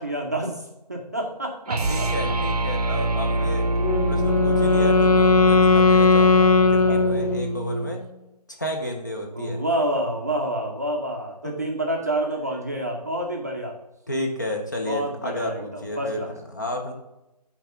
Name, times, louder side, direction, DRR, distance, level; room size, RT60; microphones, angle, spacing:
voice 1, 0.0-2.3 6.9-7.0 9.4-13.7 14.9-16.3, right 1 dB, 25° right, 1 dB, 0.6 m, -28 dB
sound 1, 1.7-8.0, right 2 dB, 70° right, 0.7 m, -25 dB
voice 2, 1.9-3.7 4.1-8.0 8.5-9.6 11.4-11.6 14.1-16.9, left 1 dB, 30° left, 2 dB, 0.7 m, -32 dB
Wind instrument woodwind instrument, 3.8-7.7, left 4 dB, 60° left, 0.6 m, -18 dB
8.5 x 3.4 x 5.4 m, 0.93 s
hypercardioid pair, 180°, 21 cm